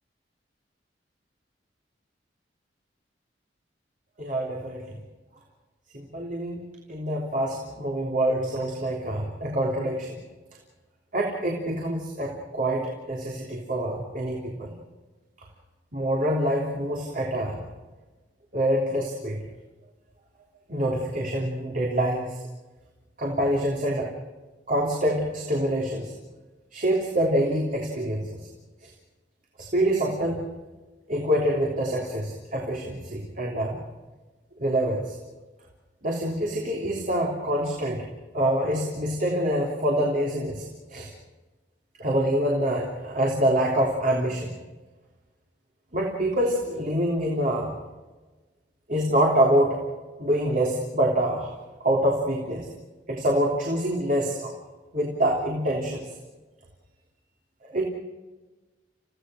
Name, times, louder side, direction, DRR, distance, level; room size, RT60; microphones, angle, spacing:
voice 1, 4.2-5.0 5.9-6.6 6.9-10.2 11.1-14.7 15.9-17.6 18.5-19.4 20.7-22.4 23.2-24.1 24.7-26.1 26.7-28.4 28.8-28.9 29.6-30.4 31.1-33.8 34.6-35.1 36.0-38.0 38.3-41.1 42.0-44.5 45.9-47.7 48.9-49.8 50.2-51.5 51.8-52.7 53.1-54.5 54.9-56.1 57.6-57.8, right 1 dB, 45° right, -1 dB, 3.3 m, -26 dB
30.0 x 17.0 x 6.4 m, 1.2 s
head